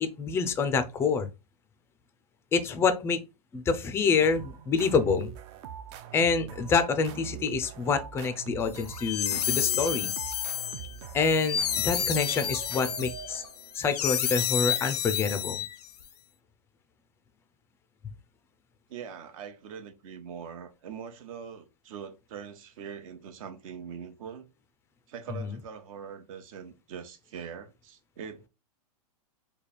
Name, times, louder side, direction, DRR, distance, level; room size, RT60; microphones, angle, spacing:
voice 1, 0.0-1.3 2.5-3.2 3.5-5.3 6.1-10.1 11.1-13.4 13.7-15.6 25.4-25.5, left 5 dB, 15° left, 0.4 m, -27 dB
sound 1, 4.2-13.7, right 9 dB, 40° right, 0.5 m, -43 dB
sound 2, 8.7-16.0, left 10 dB, 90° left, 0.6 m, -30 dB
voice 2, 18.9-24.5 25.1-28.5, right 7 dB, 60° right, 0.9 m, -42 dB
3.2 x 2.3 x 4.1 m
hypercardioid pair, 140°, 20 cm